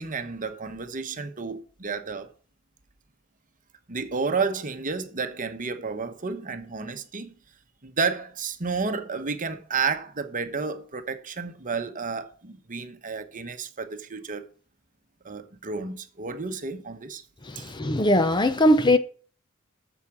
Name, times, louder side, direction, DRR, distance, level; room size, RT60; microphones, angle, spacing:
voice 1, 0.0-2.3 3.9-7.3 7.8-14.5 15.2-17.2 17.6-17.7, right 4 dB, 40° right, 1.1 m, -31 dB
voice 2, 17.5-19.0, left 1 dB, 20° left, 0.6 m, -20 dB
8.3 x 7.2 x 7.3 m
head